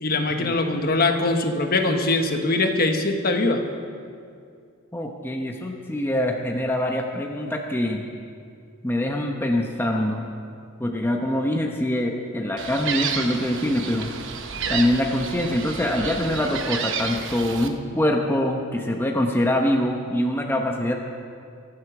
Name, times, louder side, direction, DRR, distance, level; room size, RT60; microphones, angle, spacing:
voice 1, 0.0-3.6, left 2 dB, 45° left, 5 dB, 1.2 m, -22 dB
voice 2, 4.9-8.0 8.8-10.3 10.8-14.1 14.7-21.0, left 1 dB, 10° left, 1 dB, 0.9 m, -24 dB
Gull seagull, 12.6-17.7, right 6 dB, 60° right, 1.0 m, -31 dB
24.0 x 8.1 x 6.0 m, 2.3 s
head